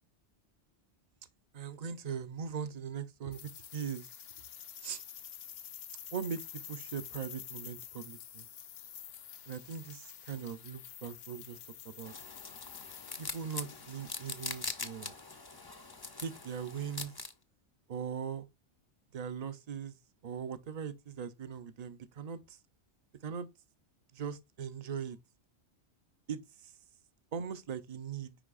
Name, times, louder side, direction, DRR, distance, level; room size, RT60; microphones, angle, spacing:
voice 1, 1.5-4.1 4.8-5.0 6.1-8.5 9.5-11.6 11.8-12.1 13.2-15.2 16.2-17.1 17.9-18.5 19.1-20.0 20.2-22.6 23.2-23.5 24.1-25.2 26.3-26.7 27.3-28.4, right 7 dB, 45° right, 0.6 m, -40 dB
sound 1, 3.3-14.7, left 9 dB, 65° left, 0.8 m, -49 dB
sound 2, 12.0-17.3, left 3 dB, 25° left, 0.6 m, -43 dB
10.0 x 3.8 x 2.5 m
omnidirectional pair, 1.2 m